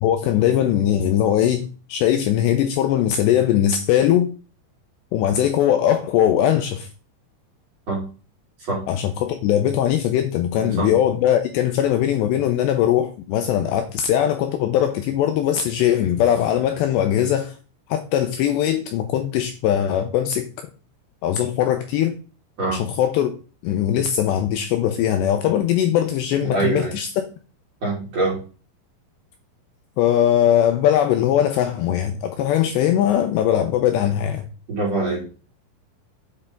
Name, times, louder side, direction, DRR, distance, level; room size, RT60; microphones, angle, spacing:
voice 1, 0.0-4.3 5.1-6.9 8.9-17.6 17.9-20.7 21.2-22.2 22.7-23.3 23.6-27.1 30.0-34.5, left 10 dB, 85° left, 2.6 m, -20 dB
voice 2, 10.6-10.9 22.6-22.8 26.4-27.0 27.8-28.4 34.7-35.3, right 2 dB, 35° right, 5.0 m, -24 dB
8.4 x 7.0 x 3.7 m
omnidirectional pair, 5.6 m